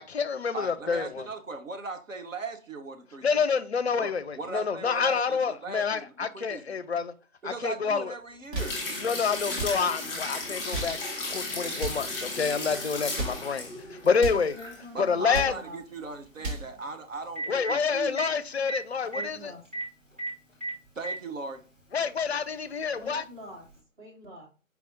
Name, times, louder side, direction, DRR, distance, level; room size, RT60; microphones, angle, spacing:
voice 1, 0.0-1.3 3.2-7.1 7.4-8.1 9.0-11.0 11.2-14.5 15.0-15.5 17.5-19.5 21.9-23.2, left 5 dB, 55° left, 0.5 m, -28 dB
voice 2, 0.5-3.4 4.0-6.8 7.4-8.8 14.2-14.3 14.9-18.2 20.9-21.6, right 3 dB, 70° right, 1.0 m, -39 dB
sound 1, 8.3-8.8 9.5-9.8 10.5-11.0 11.7-12.1 13.0-13.5 14.1-14.5 15.1-15.6 16.2-16.7, right 2 dB, 50° right, 1.9 m, -34 dB
sound 2, 8.6-14.8 15.2-15.3, left 2 dB, 10° left, 1.3 m, -35 dB
voice 3, 14.3-15.8 19.1-19.7 20.1-20.2 22.9-23.7 24.0-24.5, equal, 35° right, 1.9 m, -45 dB
Telephone, 14.6-14.7 16.8-16.9 17.2-17.7 18.2-18.3 18.7-18.8 19.1-19.2 19.7-19.8 20.2-20.3 20.6-21.2 22.2-22.3 23.7-23.8, right 2 dB, 10° right, 0.7 m, -32 dB
4.7 x 3.3 x 2.6 m
figure-of-eight pair, 145°, 40 cm